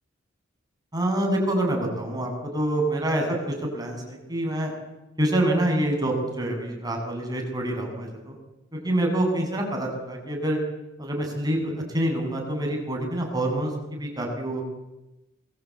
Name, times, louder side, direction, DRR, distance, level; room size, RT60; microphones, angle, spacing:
voice 1, 0.9-4.7 5.2-8.3 8.7-10.6 11.0-14.6, right 1 dB, 20° right, 1 dB, 7.7 m, -26 dB
27.5 x 22.0 x 8.7 m, 0.99 s
head